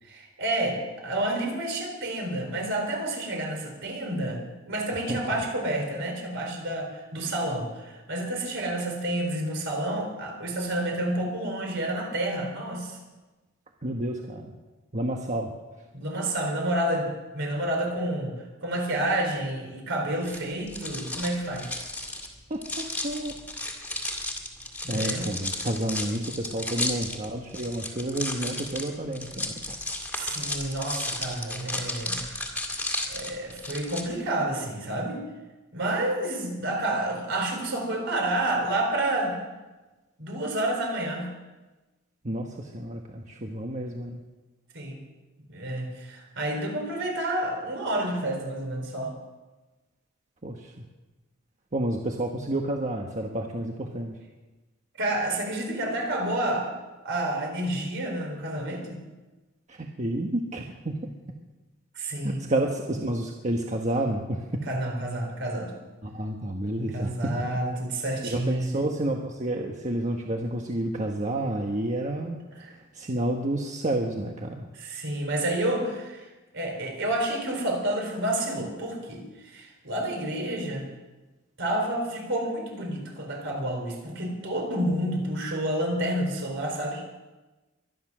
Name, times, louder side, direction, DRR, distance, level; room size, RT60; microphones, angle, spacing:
voice 1, 0.0-13.0 15.9-21.7 24.8-25.3 30.1-32.3 33.1-35.2 35.7-39.4 40.2-41.3 44.7-45.0 45.5-49.1 55.0-56.7 57.0-59.0 61.9-62.4 64.7-65.7 66.9-68.7 72.6-72.7 74.7-76.3 76.5-80.9 81.6-87.0, right 1 dB, 60° right, 2 dB, 4.3 m, -29 dB
voice 2, 5.1-5.4 13.8-14.5 14.9-15.5 22.5-23.3 24.9-29.8 42.2-44.2 50.4-50.8 51.7-54.1 59.7-61.1 62.2-64.6 66.0-67.3 68.2-74.7, right 1 dB, 35° right, 1 dB, 1.2 m, -30 dB
sound 1, 20.2-34.0, left 2 dB, 5° left, 2.2 m, -34 dB
23.5 x 10.0 x 6.2 m, 1.2 s
head